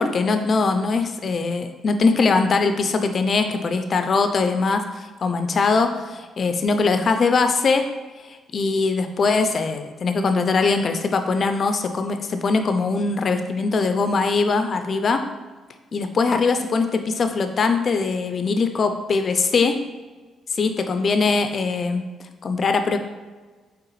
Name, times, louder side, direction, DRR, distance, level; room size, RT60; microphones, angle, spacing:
voice 1, 0.0-7.9 8.2-15.2 15.9-19.8 20.5-22.0 22.4-23.0, left 4 dB, 45° left, 7 dB, 0.4 m, -21 dB
4.7 x 3.4 x 3.0 m, 1.3 s
cardioid pair, 90°, 0 cm